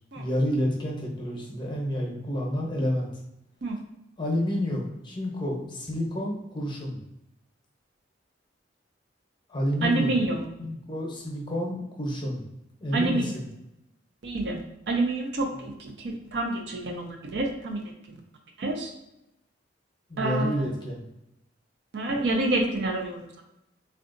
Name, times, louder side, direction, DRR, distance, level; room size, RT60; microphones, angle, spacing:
voice 1, 0.2-3.1 4.2-7.0 9.5-10.2 10.6-12.4 12.8-13.5 20.1-21.0, equal, 25° left, -1 dB, 0.7 m, -29 dB
voice 2, 9.8-10.4 12.9-13.3 14.2-14.6 14.9-17.8 18.6-18.9 20.2-20.6 21.9-23.2, right 2 dB, 65° right, 1 dB, 0.6 m, -27 dB
3.7 x 2.3 x 2.6 m, 0.87 s
head